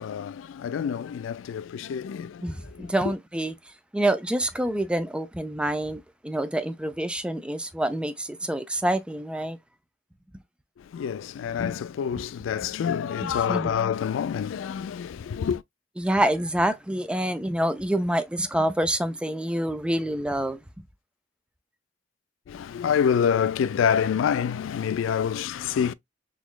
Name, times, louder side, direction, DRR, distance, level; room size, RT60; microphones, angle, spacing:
voice 1, 0.0-2.9 10.8-15.6 22.5-25.9, left 7 dB, 80° left, 0.3 m, -27 dB
voice 2, 2.4-3.5 3.9-9.6 13.2-13.7 16.0-20.6, right 1 dB, 5° right, 0.3 m, -27 dB
4.0 x 3.0 x 2.2 m
head